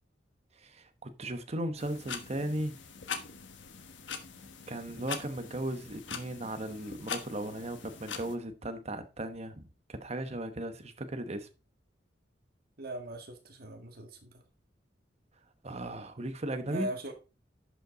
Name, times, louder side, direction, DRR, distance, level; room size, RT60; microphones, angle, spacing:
voice 1, 0.6-2.7 4.7-11.5 15.6-16.9, right 1 dB, 35° right, 1.0 m, -36 dB
sound 1, 1.8-8.4, left 6 dB, 80° left, 1.2 m, -42 dB
voice 2, 12.8-14.4 16.7-17.1, right 1 dB, 55° right, 1.7 m, -40 dB
11.0 x 5.6 x 3.8 m
head